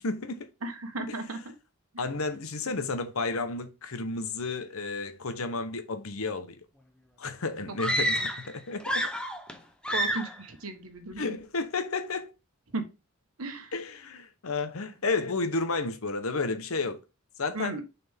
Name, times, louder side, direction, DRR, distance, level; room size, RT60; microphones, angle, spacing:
voice 1, 0.0-0.5 1.1-1.2 2.0-6.5 7.2-9.1 11.2-12.3 13.7-17.0 17.4-17.8, left 3 dB, 75° left, 1.0 m, -32 dB
voice 2, 0.6-1.5 1.9-2.0 7.7-7.8 8.2-8.3 9.9-11.3 12.7-12.8 13.4-13.7 17.5-17.8, right 2 dB, 85° right, 1.3 m, -35 dB
sound 1, 7.8-8.5 8.8-9.6 9.8-10.4, equal, 5° left, 0.7 m, -29 dB
6.8 x 4.3 x 3.5 m
head